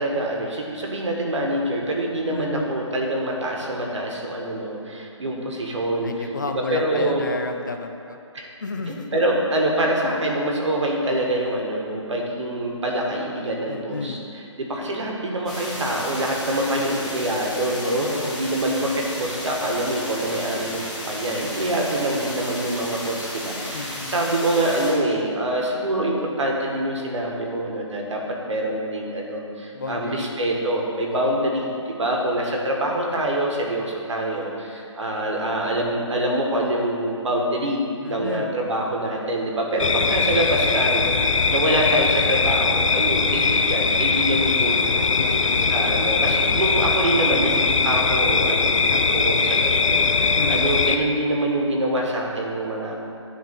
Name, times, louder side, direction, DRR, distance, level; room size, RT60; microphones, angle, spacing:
voice 1, 0.0-6.3 6.5-7.2 8.3-8.4 8.9-45.4 45.7-52.9, right 1 dB, 70° right, -1 dB, 1.6 m, -25 dB
voice 2, 2.3-2.7 6.0-8.2 8.6-9.1 13.7-14.2 17.8-18.4 23.7-24.2 29.7-30.3 31.1-31.4 38.0-38.5 45.2-45.7 50.2-50.6, left 4 dB, 40° left, 5 dB, 0.4 m, -32 dB
sound 1, 15.5-24.9, left 1 dB, 5° left, 0.9 m, -33 dB
sound 2, 39.8-51.0, left 4 dB, 80° left, 0.6 m, -20 dB
10.5 x 3.6 x 5.3 m, 2.6 s
hypercardioid pair, 170°, 16 cm